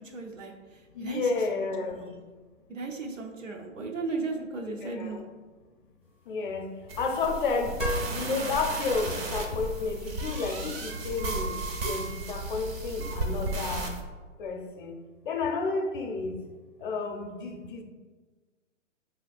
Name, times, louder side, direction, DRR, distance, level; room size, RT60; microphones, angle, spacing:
voice 1, 0.0-2.2 2.7-5.2, right 3 dB, 75° right, 1 dB, 0.9 m, -36 dB
voice 2, 0.9-2.0 4.8-5.2 6.3-6.7 7.0-7.7 8.1-11.5 11.8-13.9 14.4-14.9 15.2-16.3 16.8-17.8, left 4 dB, 40° left, 3 dB, 0.7 m, -31 dB
sound 1, 6.0-11.8, left 1 dB, 5° right, 0.3 m, -42 dB
sound 2, 6.9-14.0, right 2 dB, 50° right, 0.8 m, -34 dB
6.1 x 3.2 x 2.4 m, 1.4 s
figure-of-eight pair, 120°, 38 cm